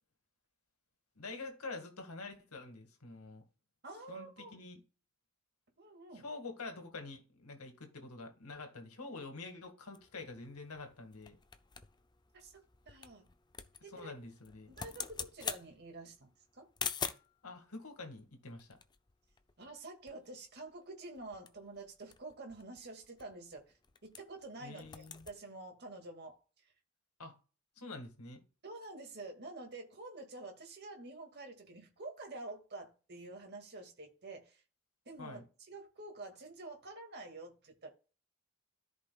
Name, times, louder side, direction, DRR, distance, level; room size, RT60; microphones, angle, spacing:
voice 1, 1.2-3.4 4.1-4.8 6.1-11.4 13.9-14.7 17.4-18.8 24.6-25.3 27.2-27.4 27.8-28.4 35.2-35.4, left 3 dB, 85° left, 1.9 m, -47 dB
voice 2, 3.8-4.5 5.8-6.3 12.3-13.3 13.8-14.1 14.7-16.7 19.6-23.8 24.0-26.4 28.6-34.6 35.1-37.9, right 2 dB, 50° right, 2.1 m, -48 dB
sound 1, 9.9-17.4 18.2-19.8 20.1-20.2 20.5-20.8 21.2-24.5 24.7-25.4, left 6 dB, 20° left, 0.5 m, -45 dB
13.5 x 5.3 x 2.3 m
head